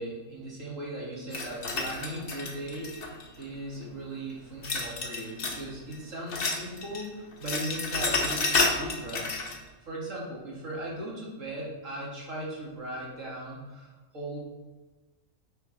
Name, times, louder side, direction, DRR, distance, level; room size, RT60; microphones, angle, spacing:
voice 1, 0.0-9.4 9.8-14.5, right 1 dB, 65° right, -5 dB, 2.5 m, -38 dB
sound 1, 1.3-3.4 4.6-5.7 5.9-7.1 7.3-9.6, left 3 dB, 45° left, 1.0 m, -30 dB
8.9 x 5.1 x 3.3 m, 1.2 s
omnidirectional pair, 1.5 m